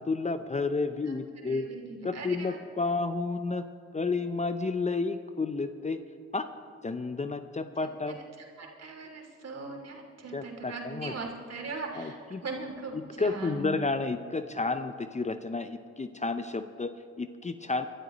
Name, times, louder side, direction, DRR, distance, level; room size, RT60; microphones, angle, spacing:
voice 1, 0.1-1.7 2.0-3.7 3.9-6.0 6.3-6.5 6.8-8.2 10.3-11.1 12.0-12.4 13.2-17.9, left 3 dB, 25° left, 10 dB, 0.7 m, -31 dB
voice 2, 1.4-2.6 7.8-13.8, right 3 dB, 55° right, 1 dB, 3.0 m, -40 dB
24.0 x 12.0 x 3.1 m, 2.3 s
supercardioid pair, 50°, 30 cm